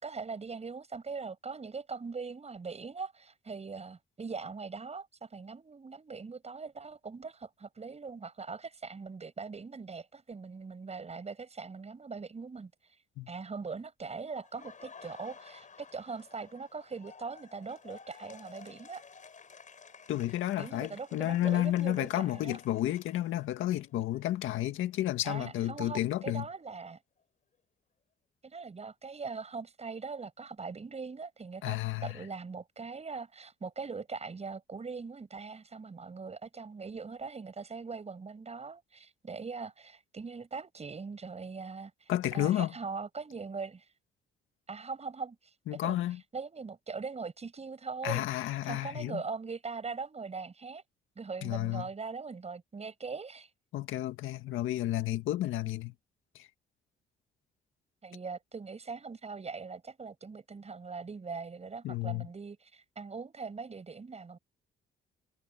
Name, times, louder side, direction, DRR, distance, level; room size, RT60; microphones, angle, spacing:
voice 1, 0.0-12.7 13.3-19.0 20.6-22.6 25.2-27.0 28.4-43.9 44.7-46.0 46.3-48.2 48.7-50.8 51.2-53.5 58.0-64.4, right 4 dB, 35° right, 6.9 m, -41 dB
Laughter, 14.4-24.2 24.6-26.6, left 5 dB, 40° left, 5.0 m, -54 dB
voice 2, 20.1-26.5 31.6-32.2 42.1-42.7 45.7-46.2 48.0-49.2 51.4-51.9 53.7-55.9 56.4-56.5 61.8-62.3, left 14 dB, 85° left, 1.8 m, -31 dB
cardioid pair, 90°, 20 cm